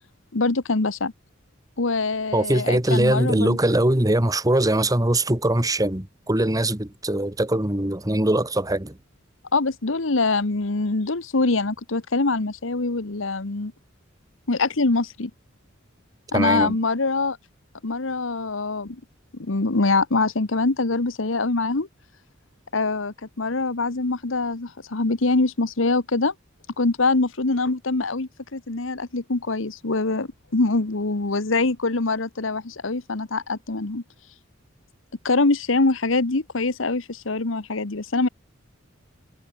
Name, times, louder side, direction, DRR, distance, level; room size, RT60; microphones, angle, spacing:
voice 1, 0.3-1.1 1.8-3.6 9.5-13.7 14.5-15.3 16.3-17.4 17.8-19.0 19.4-21.9 22.7-26.3 26.8-34.0 35.2-38.3, left 3 dB, 75° left, 1.3 m, -24 dB
voice 2, 2.3-8.9 16.3-16.8, right 1 dB, 20° right, 1.8 m, -22 dB
head